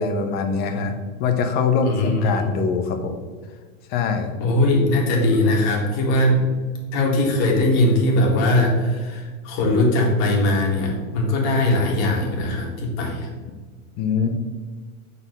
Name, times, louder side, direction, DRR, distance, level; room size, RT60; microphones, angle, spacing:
voice 1, 0.0-3.2 3.9-4.3 14.0-14.3, left 5 dB, 25° left, 6 dB, 0.5 m, -23 dB
voice 2, 1.8-2.5 4.4-6.4 6.9-13.3, left 1 dB, 40° left, -1 dB, 1.7 m, -20 dB
6.2 x 4.1 x 5.3 m, 1.5 s
supercardioid pair, 155°, 42 cm